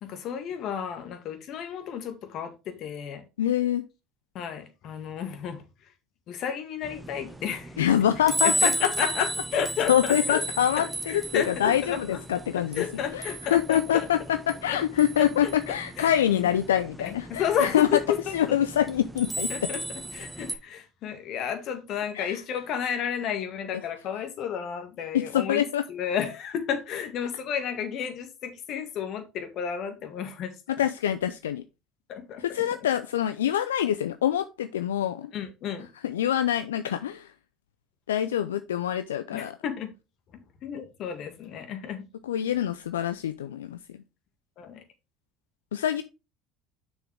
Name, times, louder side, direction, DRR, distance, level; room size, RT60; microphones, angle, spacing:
voice 1, 0.0-3.2 4.3-5.6 6.3-7.8 8.4-10.4 10.8-12.2 12.5-14.1 14.7-14.8 15.2-15.5 16.0-16.5 17.0-18.5 19.5-30.5 32.1-32.4 35.3-35.9 39.3-39.9 40.6-42.0 44.6-44.8, left 8 dB, 55° left, 1.8 m, -32 dB
voice 2, 3.4-3.8 7.8-8.9 9.5-9.6 9.9-12.8 13.1-18.0 18.3-19.7 22.1-22.4 25.1-25.8 30.7-31.6 32.4-35.3 36.0-37.3 38.1-39.5 42.2-43.8 45.7-46.0, left 10 dB, 85° left, 0.4 m, -25 dB
sound 1, 6.8-20.6, right 1 dB, 10° right, 1.3 m, -34 dB
6.6 x 6.2 x 3.4 m
hypercardioid pair, 70°, 0 cm